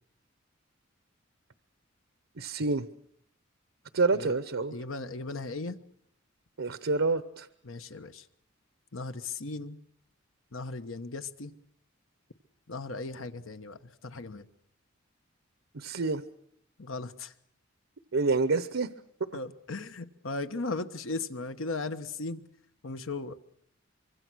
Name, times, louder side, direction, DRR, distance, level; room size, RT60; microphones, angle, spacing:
voice 1, 2.4-2.9 3.9-4.7 6.6-7.5 15.7-16.2 18.1-18.9, right 3 dB, 80° right, 12 dB, 0.9 m, -27 dB
voice 2, 4.7-5.8 7.6-8.3 8.9-9.8 10.5-11.5 12.7-14.5 16.8-17.3 19.3-22.4 22.8-23.4, left 3 dB, 90° left, 9 dB, 1.2 m, -37 dB
25.0 x 24.5 x 6.3 m, 0.69 s
head